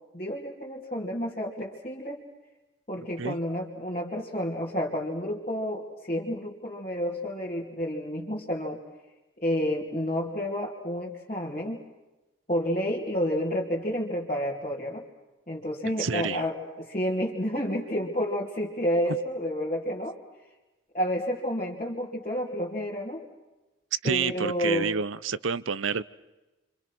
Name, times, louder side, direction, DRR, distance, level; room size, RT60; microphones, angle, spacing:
voice 1, 0.1-2.2 2.9-8.8 9.4-11.8 12.5-15.0 15.5-20.2 20.9-23.2 24.0-24.9, equal, 35° left, -5 dB, 2.8 m, -30 dB
voice 2, 16.0-16.4 23.9-26.0, right 5 dB, 85° right, 18 dB, 0.8 m, -28 dB
29.0 x 26.0 x 6.2 m, 1.1 s
head